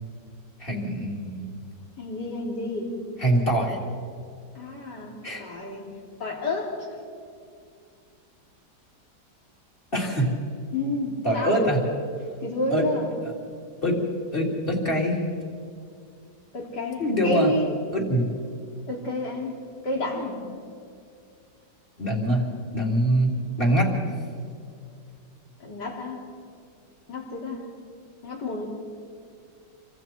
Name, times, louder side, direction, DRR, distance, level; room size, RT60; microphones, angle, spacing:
voice 1, 0.6-1.5 3.2-3.8 5.2-5.4 9.9-10.3 11.2-11.8 12.7-12.8 13.8-14.0 14.3-15.2 17.0-17.5 17.9-18.2 22.0-22.5 22.7-23.9, equal, 30° left, -1 dB, 3.6 m, -23 dB
voice 2, 2.0-3.0 4.6-5.1 5.4-5.8 6.2-7.0 10.7-11.7 12.4-13.1 16.5-17.7 18.9-19.5 19.8-20.4 25.6-26.2 27.1-27.6 28.2-28.7, left 1 dB, 65° left, -1 dB, 4.0 m, -30 dB
28.5 x 25.0 x 4.5 m, 2.3 s
omnidirectional pair, 2.0 m